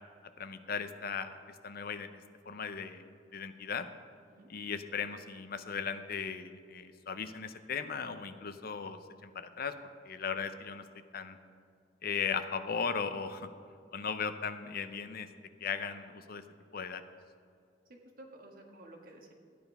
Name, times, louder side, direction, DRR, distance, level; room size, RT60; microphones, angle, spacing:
voice 1, 0.4-2.1 2.5-3.9 4.5-9.7 10.0-10.8 11.1-11.4 12.0-13.5 13.9-15.3 15.6-16.4 16.7-17.0, left 6 dB, 55° left, 10 dB, 0.7 m, -37 dB
voice 2, 17.9-19.3, right 1 dB, 50° right, 1 dB, 1.7 m, -53 dB
12.5 x 9.4 x 5.5 m, 2.3 s
head